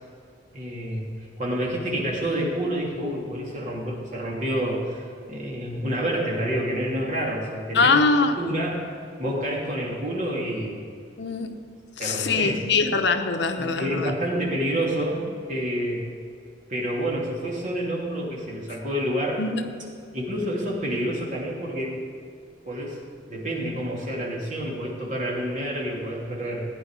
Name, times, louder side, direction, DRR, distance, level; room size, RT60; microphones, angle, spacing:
voice 1, 0.5-1.0 1.4-8.0 8.4-8.9 9.2-10.9 12.0-12.6 13.6-16.0 16.7-19.4 20.1-22.0 22.6-23.0 23.3-26.7, equal, 45° right, -3 dB, 2.8 m, -28 dB
voice 2, 7.7-8.4 11.2-11.6 12.0-14.1 19.4-19.6, left 4 dB, 70° left, 7 dB, 0.9 m, -22 dB
16.0 x 10.0 x 4.9 m, 2.4 s
head